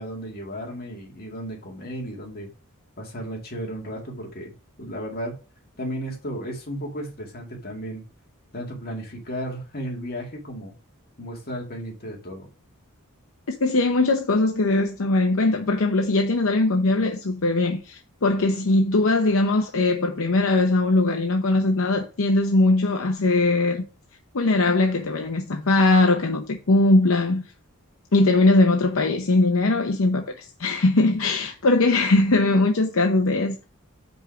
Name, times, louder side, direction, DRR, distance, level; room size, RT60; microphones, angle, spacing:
voice 1, 0.0-2.5 3.0-4.5 4.8-5.4 5.8-8.0 8.5-10.7 11.2-12.5, equal, 45° left, 2.2 m, -34 dB
voice 2, 13.6-23.8 24.3-27.4 28.1-33.6, left 2 dB, 65° left, 0.7 m, -20 dB
5.3 x 5.0 x 5.8 m
head